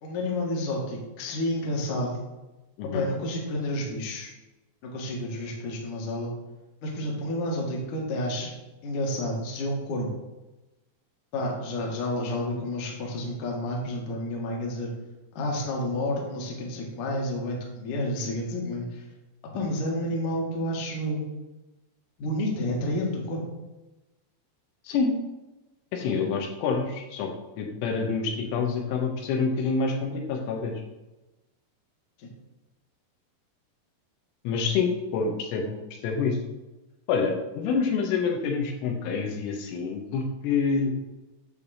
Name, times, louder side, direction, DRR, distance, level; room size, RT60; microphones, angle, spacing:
voice 1, 0.0-2.2 2.9-4.3 4.8-6.3 6.8-8.5 8.8-10.1 11.3-14.9 15.4-19.0 19.5-21.2 22.2-23.5 32.2-32.3, left 1 dB, 60° left, -2 dB, 2.3 m, -30 dB
voice 2, 25.9-27.3 27.6-30.7 34.5-36.4 37.1-41.2, left 5 dB, 80° left, 1 dB, 3.6 m, -27 dB
9.5 x 3.5 x 6.4 m, 1.1 s
omnidirectional pair, 5.7 m